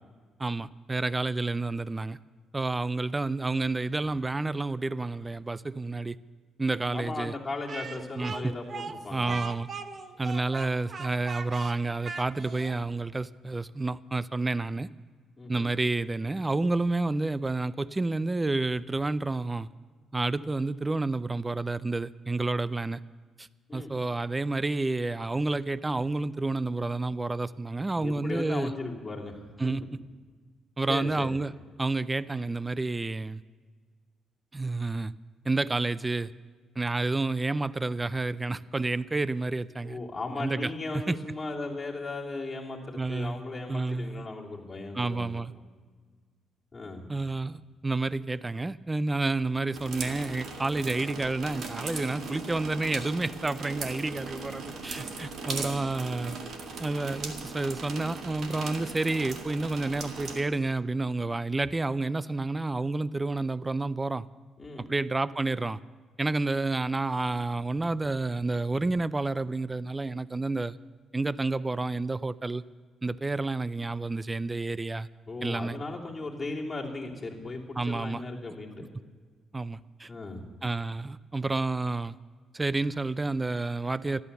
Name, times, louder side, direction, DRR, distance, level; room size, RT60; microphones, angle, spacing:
voice 1, 0.4-2.2 2.5-6.2 6.6-7.4 8.1-8.5 9.1-9.7 10.2-14.9 15.5-19.7 20.1-23.0 23.4-28.7 29.6-29.8 30.8-31.5 31.8-33.4 34.5-35.1 35.5-36.3 36.8-40.0 40.4-41.2 42.9-43.4 43.7-44.3 44.9-45.5 47.1-56.4 56.8-64.3 64.9-65.8 66.2-70.8 71.1-72.6 73.0-75.1 75.4-75.8 77.8-78.2 79.5-80.1 80.6-82.2 82.5-84.2, right 3 dB, 20° right, 18 dB, 0.4 m, -30 dB
voice 2, 6.9-9.4 15.4-15.7 23.7-23.9 28.0-29.4 29.6-29.7 30.9-31.4 39.8-45.4 46.7-47.0 64.6-64.8 75.3-78.8 80.1-80.4, left 3 dB, 25° left, -3 dB, 2.9 m, -37 dB
Speech, 7.7-12.8, right 4 dB, 45° right, 0.9 m, -39 dB
sound 1, 49.7-60.4, right 4 dB, 65° right, 2.1 m, -38 dB
14.0 x 12.0 x 6.8 m, 1.6 s
cardioid pair, 90°, 0 cm